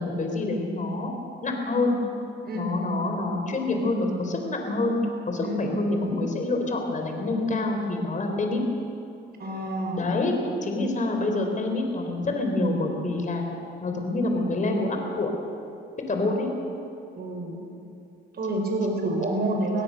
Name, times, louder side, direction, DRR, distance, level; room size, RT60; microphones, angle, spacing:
voice 1, 0.0-1.1 1.4-2.0 2.5-5.0 5.3-8.6 9.9-10.4 10.6-13.5 13.8-15.3 16.1-16.5, left 2 dB, 40° left, 3 dB, 4.1 m, -26 dB
voice 2, 9.4-10.0 17.2-17.6 18.3-19.8, right 1 dB, 50° right, 2 dB, 5.3 m, -28 dB
24.5 x 17.0 x 6.6 m, 2.6 s
cardioid pair, 90°, 20 cm